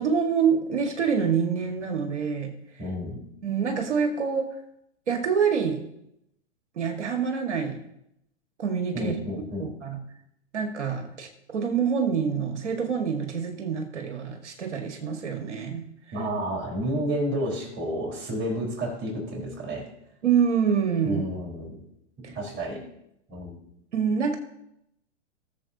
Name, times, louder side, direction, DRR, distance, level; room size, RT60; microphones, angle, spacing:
voice 1, 0.0-2.5 3.4-4.5 5.1-5.8 6.8-7.8 8.6-9.1 9.6-10.0 10.5-15.8 20.2-21.2 22.2-22.4 23.9-24.4, right 6 dB, 75° right, 3 dB, 1.8 m, -26 dB
voice 2, 2.8-3.2 8.9-9.7 16.1-19.9 21.0-21.8 22.3-22.8 23.3-23.6, equal, 35° right, -1 dB, 4.3 m, -30 dB
19.0 x 7.3 x 2.8 m, 0.78 s
hypercardioid pair, 115°, 35 cm